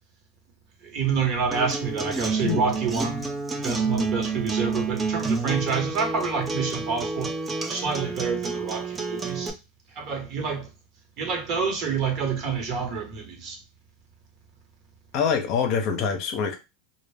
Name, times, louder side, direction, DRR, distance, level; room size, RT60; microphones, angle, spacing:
voice 1, 0.8-3.3 3.6-7.3 7.7-9.5 9.9-10.7 11.2-13.6, right 5 dB, 45° right, 1.0 m, -28 dB
Acoustic guitar, 1.5-9.5, right 4 dB, 20° right, 0.5 m, -29 dB
voice 2, 15.1-16.6, left 6 dB, 50° left, 0.6 m, -25 dB
2.2 x 2.1 x 3.3 m
supercardioid pair, 125°, 0 cm